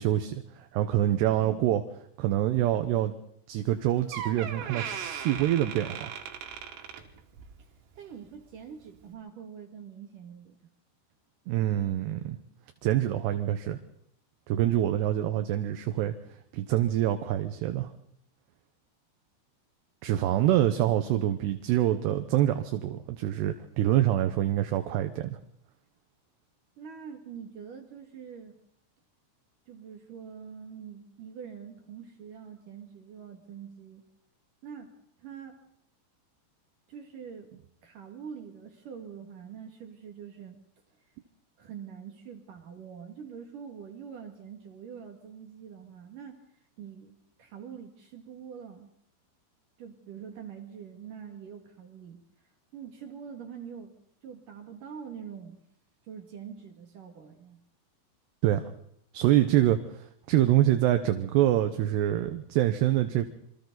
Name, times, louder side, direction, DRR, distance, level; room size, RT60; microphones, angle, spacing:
voice 1, 0.0-1.8 2.2-3.1 3.5-6.1 11.5-12.4 12.8-13.8 14.5-16.2 16.5-17.9 20.0-25.4 58.4-58.7 59.1-63.3, right 13 dB, 70° right, 7 dB, 2.8 m, -26 dB
Door, 3.7-3.8 4.1-7.6 8.0-8.3 9.0-9.1, right 8 dB, 90° right, 4.6 m, -38 dB
voice 2, 8.0-10.6 20.7-20.9 26.8-28.5 29.7-34.0 34.6-35.6 36.9-37.5 37.8-40.6 41.6-46.4 46.8-48.9 49.8-52.2 52.7-53.9 54.2-55.6 56.1-57.6, right 7 dB, 50° right, 4 dB, 3.1 m, -44 dB
27.5 x 25.0 x 4.1 m, 0.72 s
omnidirectional pair, 5.6 m